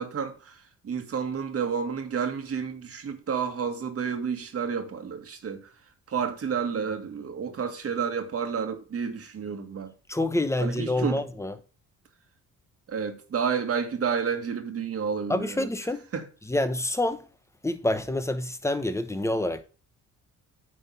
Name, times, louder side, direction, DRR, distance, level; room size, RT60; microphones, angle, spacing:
voice 1, 0.0-5.7 6.1-9.9 10.6-11.2 12.9-15.7 16.1-16.3, right 6 dB, 50° right, 1.7 m, -30 dB
voice 2, 10.1-11.5 15.3-16.0 16.5-17.3 17.6-19.6, left 1 dB, 10° left, 1.0 m, -27 dB
9.5 x 3.7 x 5.7 m
cardioid pair, 90°, 30 cm